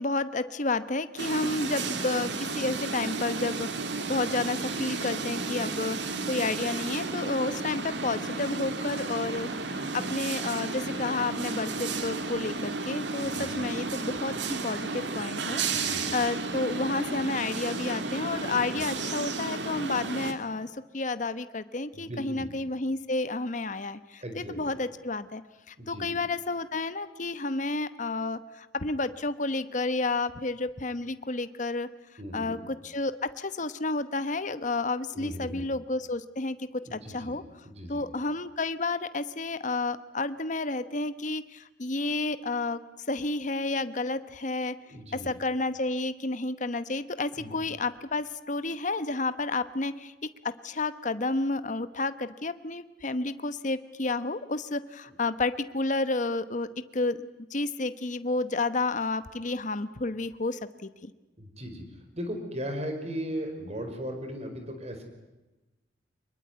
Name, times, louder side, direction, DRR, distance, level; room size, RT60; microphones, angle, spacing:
voice 1, 0.0-6.0 6.2-25.4 25.7-31.9 32.3-37.4 37.9-42.8 43.1-44.8 45.2-56.7 56.9-61.1, left 3 dB, 45° left, 12 dB, 1.1 m, -31 dB
sound 1, 1.2-20.3, right 3 dB, 80° right, 2.4 m, -33 dB
voice 2, 13.3-13.7 15.7-16.2 21.9-22.5 24.2-24.8 25.8-26.1 32.2-32.6 35.1-35.6 36.9-37.3 37.6-38.0 44.9-45.3 47.3-47.6 61.4-65.0, equal, 40° right, 6 dB, 5.3 m, -37 dB
24.5 x 21.5 x 9.5 m, 1.0 s
head